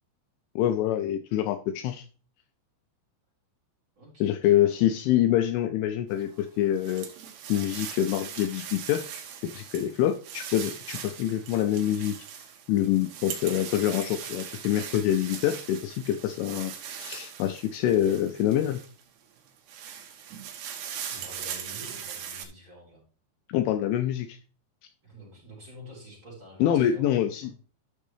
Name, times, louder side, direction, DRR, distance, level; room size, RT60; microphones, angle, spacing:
voice 1, 0.6-2.1 4.2-7.1 7.5-9.1 9.5-12.2 12.7-18.8 23.5-24.4 26.6-27.5, left 11 dB, 85° left, 8 dB, 2.8 m, -26 dB
voice 2, 4.0-4.9 21.1-23.0 25.0-27.3, equal, 20° right, -5 dB, 4.8 m, -48 dB
sound 1, 6.2-19.0 19.5-22.4, right 8 dB, 70° right, 3.0 m, -40 dB
12.0 x 6.3 x 3.3 m, 0.39 s
omnidirectional pair, 5.7 m